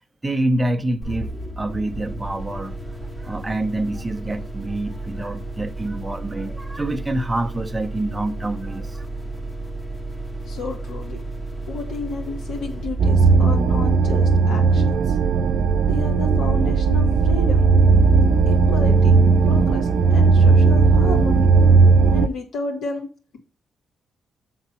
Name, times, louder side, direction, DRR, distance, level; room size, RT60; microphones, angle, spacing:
voice 1, 0.2-2.8 3.2-9.1, right 1 dB, 15° right, 0.7 m, -26 dB
sound 1, 1.0-14.5, right 2 dB, 10° left, 1.1 m, -33 dB
voice 2, 10.4-11.2 11.6-15.2 15.8-17.6 18.5-19.2 19.4-21.5 22.1-23.1, left 4 dB, 80° left, 2.8 m, -32 dB
sound 2, 13.0-22.3, right 4 dB, 65° right, 0.5 m, -16 dB
7.1 x 3.9 x 6.0 m
cardioid pair, 95°, 0 cm